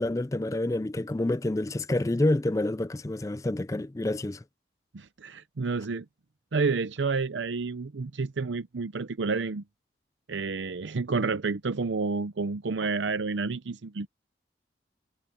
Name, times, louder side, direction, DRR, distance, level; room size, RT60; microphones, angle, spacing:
voice 1, 0.0-4.4, left 1 dB, 20° left, 0.4 m, -28 dB
voice 2, 4.9-6.1 6.5-9.6 10.3-14.1, right 4 dB, 90° right, 0.7 m, -30 dB
head